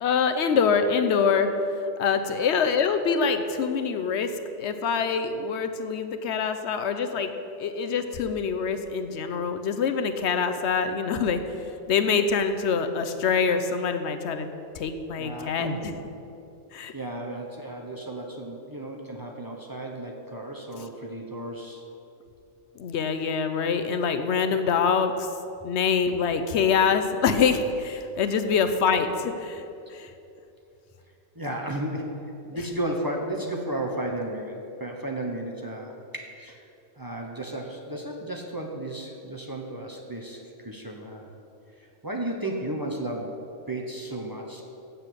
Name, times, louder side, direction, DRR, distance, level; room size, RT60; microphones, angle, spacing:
voice 1, 0.0-1.5 2.0-4.3 4.6-7.3 7.6-11.4 11.9-14.5 14.7-15.9 16.7-16.9 20.8-20.9 22.8-25.3 25.6-29.6 29.9-30.1, left 6 dB, 80° left, 8 dB, 0.9 m, -25 dB
voice 2, 15.2-15.9 16.9-21.8 31.3-36.6 37.0-41.3 41.8-44.6, right 1 dB, 20° right, 0 dB, 0.9 m, -34 dB
7.9 x 6.8 x 8.1 m, 2.8 s
omnidirectional pair, 1.2 m